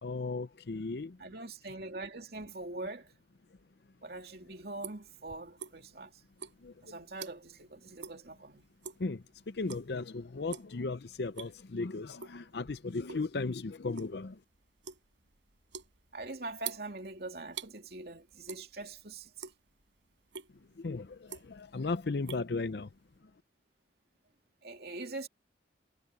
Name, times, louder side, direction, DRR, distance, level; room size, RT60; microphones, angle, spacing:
voice 1, 0.0-1.2 6.6-6.7 9.0-14.4 20.8-22.9, left 3 dB, 60° left, 0.6 m, -36 dB
voice 2, 1.2-3.1 4.0-6.2 6.8-8.7 16.1-19.5 24.6-25.3, right 2 dB, 55° right, 2.8 m, -43 dB
sound 1, 4.1-6.0 6.3-7.6 8.0-8.2 8.6-9.1 9.6-10.0 10.4-10.8 11.2-11.7 12.2-13.3 13.6-17.7 18.4-19.0 19.3-19.9 20.3-20.5 21.0-21.7 22.0-23.1, right 7 dB, 85° right, 5.0 m, -45 dB
head